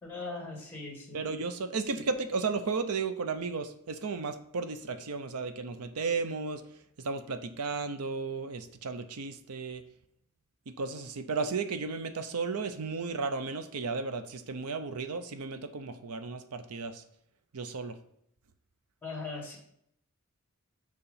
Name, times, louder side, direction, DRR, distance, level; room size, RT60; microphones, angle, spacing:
voice 1, 0.0-1.2 19.0-19.6, left 3 dB, 10° left, 0 dB, 2.3 m, -39 dB
voice 2, 1.1-6.6 7.0-9.8 10.7-17.0 17.5-18.0, right 4 dB, 90° right, 10 dB, 0.6 m, -34 dB
6.8 x 4.9 x 5.7 m, 0.71 s
head